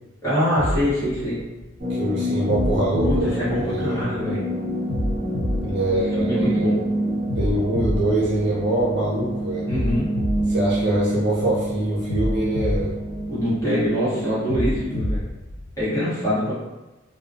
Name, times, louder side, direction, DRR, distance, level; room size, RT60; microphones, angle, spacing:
voice 1, 0.2-1.4 3.0-4.4 6.2-6.8 9.7-10.1 13.3-15.2 15.8-16.5, equal, 15° left, -11 dB, 1.1 m, -24 dB
sound 1, 0.6-1.9 2.5-4.2 4.9-6.7 7.3-9.1 9.7-11.5 12.1-13.8 14.5-15.9, left 1 dB, 60° left, 0.3 m, -29 dB
sound 2, 1.8-15.1, right 1 dB, 40° right, 1.2 m, -28 dB
voice 2, 1.9-4.0 5.6-6.7 7.4-9.7 10.5-13.0, right 1 dB, 60° right, -5 dB, 0.7 m, -24 dB
2.2 x 2.1 x 2.6 m, 1.0 s
head